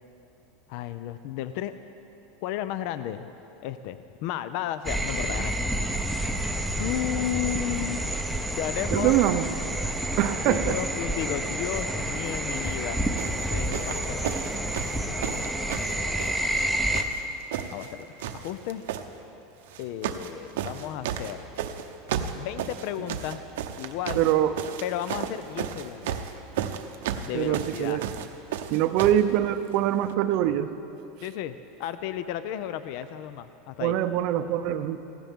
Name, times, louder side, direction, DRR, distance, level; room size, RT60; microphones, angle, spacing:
voice 1, 0.7-1.7 2.4-3.3 3.6-6.0 6.7-8.0 8.6-9.2 10.5-13.0 13.5-14.4 15.1-16.1 17.7-18.8 19.8-21.5 22.3-23.4 23.8-24.2 24.8-26.2 27.3-28.0 31.2-33.9, left 11 dB, 55° left, 12 dB, 0.4 m, -33 dB
sound 1, 4.8-17.0, right 1 dB, ahead, 0.6 m, -29 dB
voice 2, 8.9-9.5 10.2-10.8 24.2-24.5 27.3-28.0 28.7-30.7 33.8-35.0, right 12 dB, 50° right, 10 dB, 0.5 m, -24 dB
sound 2, 12.5-12.8 13.2-16.7 16.9-17.9 18.2-19.0 19.7-20.3 20.6-29.3 30.1-30.2, right 9 dB, 85° right, 0.7 m, -33 dB
16.5 x 16.0 x 3.6 m, 2.9 s
supercardioid pair, 155°, 0 cm